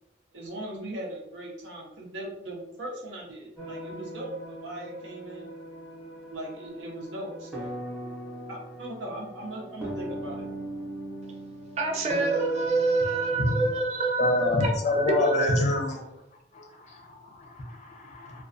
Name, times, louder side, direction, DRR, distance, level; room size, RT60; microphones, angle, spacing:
voice 1, 0.3-5.5 6.3-7.7 8.5-10.4, right 1 dB, 80° right, -3 dB, 0.8 m, -39 dB
sound 1, 3.6-13.8, right 1 dB, 5° right, 0.7 m, -39 dB
voice 2, 11.8-14.8 15.1-15.7, right 3 dB, 35° right, 1 dB, 0.4 m, -26 dB
voice 3, 14.2-16.0 16.5-18.4, left 2 dB, 40° left, 2 dB, 0.5 m, -27 dB
2.3 x 2.2 x 2.5 m, 0.80 s
head